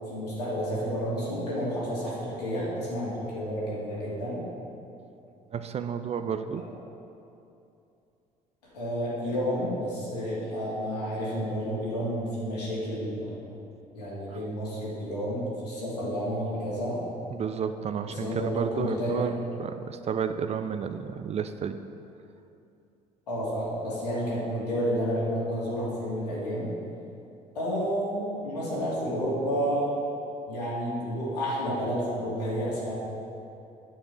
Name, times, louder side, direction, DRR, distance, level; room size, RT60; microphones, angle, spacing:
voice 1, 0.1-4.4 8.7-13.4 13.9-17.0 18.1-19.3 23.3-26.7 27.5-29.9 30.5-32.9, equal, 75° left, -7 dB, 2.7 m, -30 dB
voice 2, 5.5-6.6 14.3-14.4 17.3-21.8, right 7 dB, 30° right, 10 dB, 0.5 m, -31 dB
9.1 x 6.9 x 6.2 m, 2.7 s
figure-of-eight pair, 50°, 21 cm